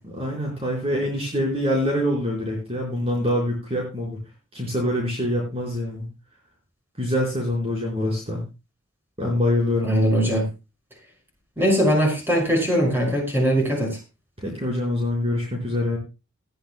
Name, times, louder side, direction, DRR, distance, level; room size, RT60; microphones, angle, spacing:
voice 1, 0.1-4.2 4.5-6.0 7.0-8.4 9.2-9.9 14.4-16.0, left 1 dB, 30° right, -2 dB, 4.9 m, -25 dB
voice 2, 9.8-10.4 11.6-13.9, equal, 10° right, 0 dB, 6.0 m, -20 dB
19.5 x 13.5 x 2.3 m, 0.29 s
head